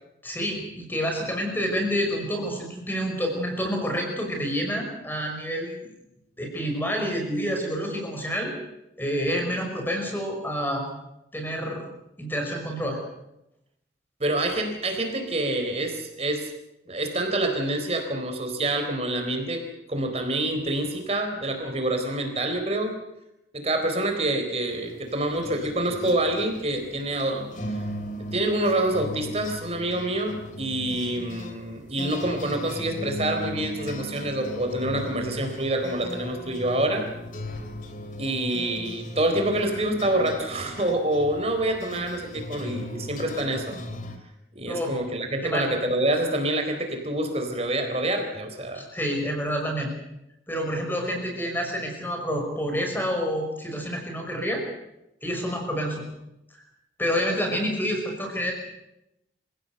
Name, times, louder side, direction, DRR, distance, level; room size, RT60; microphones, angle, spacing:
voice 1, 0.2-5.9 6.4-8.5 9.0-10.8 11.3-11.8 12.2-13.0 44.7-44.9 45.4-45.7 48.7-49.9 50.5-54.6 55.2-56.0 56.5-56.6 57.0-58.5, equal, 10° left, 2 dB, 5.7 m, -28 dB
voice 2, 14.2-16.5 16.9-22.9 23.5-27.5 28.3-37.0 38.2-43.8 44.5-48.8, right 1 dB, 35° right, 5 dB, 4.1 m, -27 dB
sound 1, 24.7-44.2, equal, 45° left, 2.8 m, -37 dB
27.5 x 17.0 x 8.0 m, 0.88 s
head